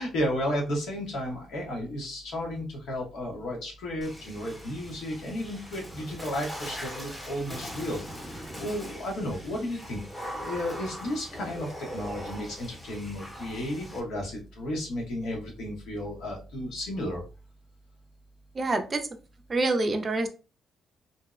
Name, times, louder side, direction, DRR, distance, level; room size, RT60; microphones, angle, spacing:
voice 1, 0.0-17.2, left 1 dB, 80° left, 0 dB, 0.9 m, -33 dB
Water / Splash splatter, 4.0-14.0, equal, 10° left, 0.7 m, -41 dB
voice 2, 18.5-19.1 19.5-20.3, right 2 dB, 35° right, 6 dB, 0.4 m, -26 dB
2.6 x 2.0 x 2.4 m, 0.33 s
cardioid pair, 90°, 0 cm